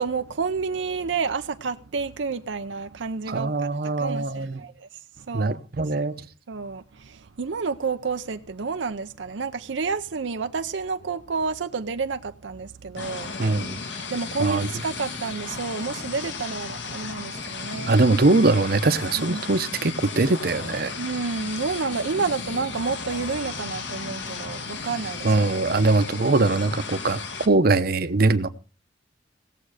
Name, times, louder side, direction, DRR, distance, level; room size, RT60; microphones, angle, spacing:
voice 1, 0.0-3.5 3.8-4.9 5.2-5.6 6.5-13.3 14.1-17.9 19.2-19.4 21.0-25.3 25.8-25.9, right 4 dB, 85° right, 0.6 m, -30 dB
voice 2, 3.3-4.6 5.3-6.3 13.4-13.8 14.4-14.7 17.9-20.9 25.2-27.2 27.5-28.5, right 3 dB, 55° right, 0.8 m, -22 dB
sound 1, 13.0-27.5, left 4 dB, 75° left, 1.7 m, -35 dB
18.0 x 7.6 x 4.9 m
head